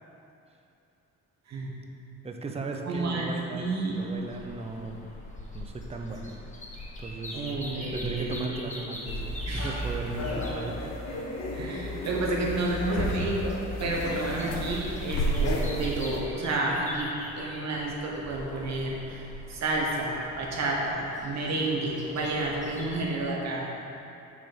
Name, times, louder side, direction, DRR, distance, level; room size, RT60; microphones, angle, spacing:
voice 1, 2.2-5.0 5.5-6.4 7.0-7.4 7.9-10.9, right 3 dB, 20° right, 3 dB, 0.6 m, -37 dB
voice 2, 2.8-3.3 3.5-4.0 7.3-8.5 9.5-9.8 11.5-17.1 17.3-23.7, right 2 dB, 60° right, -2 dB, 1.3 m, -30 dB
sound 1, 3.9-23.0, left 1 dB, 25° left, 1.2 m, -43 dB
sound 2, 9.1-16.2, equal, 60° left, 1.0 m, -32 dB
6.1 x 4.3 x 6.1 m, 2.8 s
cardioid pair, 90°, 30 cm